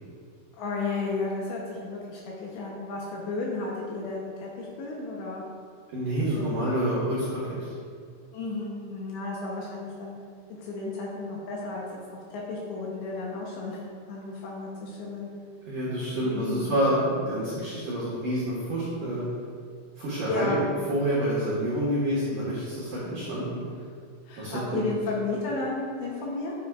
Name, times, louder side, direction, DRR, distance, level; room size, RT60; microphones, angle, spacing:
voice 1, 0.5-5.4 6.4-6.8 8.3-10.2 10.5-15.3 16.2-16.8 20.2-20.7 24.3-26.5, left 3 dB, 75° left, -3 dB, 2.8 m, -33 dB
voice 2, 5.9-7.7 15.6-19.3 20.0-20.6 20.9-23.6 24.4-24.8, right 1 dB, 65° right, -10 dB, 2.1 m, -28 dB
9.8 x 7.5 x 2.4 m, 2.2 s
omnidirectional pair, 5.8 m